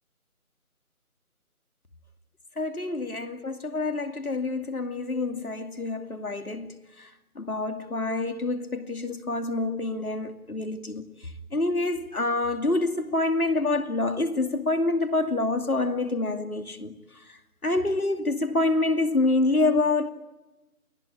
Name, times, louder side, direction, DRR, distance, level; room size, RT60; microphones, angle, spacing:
voice 1, 2.6-6.7 7.0-7.1 7.4-11.0 11.5-16.9 17.6-20.1, left 2 dB, 75° left, 2.7 m, -27 dB
29.0 x 19.5 x 8.9 m
figure-of-eight pair, 180°, 44 cm